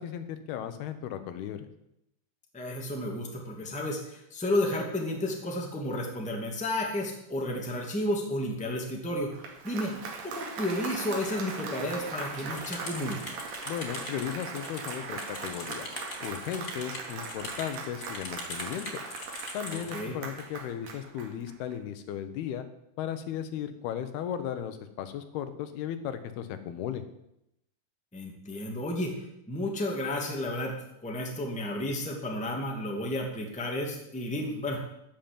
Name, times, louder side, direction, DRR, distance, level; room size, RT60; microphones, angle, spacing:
voice 1, 0.0-1.7 13.7-15.9 16.2-19.0 19.5-22.7 23.0-27.0, left 9 dB, 85° left, 10 dB, 3.0 m, -36 dB
voice 2, 2.5-9.3 9.6-9.9 10.2-13.4 19.7-20.1 28.1-29.1 29.5-30.7 31.0-34.9, left 1 dB, 5° left, 0 dB, 1.6 m, -32 dB
Applause, 9.2-21.7, right 4 dB, 65° right, 3.7 m, -40 dB
sound 1, 12.5-19.9, left 1 dB, 25° left, 2.0 m, -41 dB
13.5 x 7.3 x 9.0 m, 0.82 s
omnidirectional pair, 4.5 m